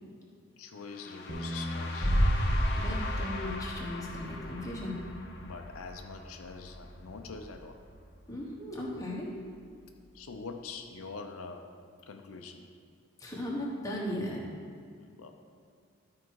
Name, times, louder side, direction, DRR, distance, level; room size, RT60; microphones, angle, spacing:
voice 1, 0.6-2.1 5.4-7.8 10.1-11.7 12.0-12.7 15.0-15.3, left 4 dB, 85° left, 5 dB, 0.6 m, -44 dB
sound 1, 0.8-6.8, left 3 dB, 50° left, 0.8 m, -42 dB
Bass guitar, 1.3-7.5, left 1 dB, 15° right, 0.7 m, -44 dB
sound 2, 2.0-7.7 8.0-8.1, equal, 40° right, 1.8 m, -32 dB
voice 2, 2.8-5.0 8.3-9.3 13.2-14.4, left 1 dB, 15° left, -4 dB, 1.2 m, -37 dB
12.0 x 4.7 x 4.7 m, 2.3 s
head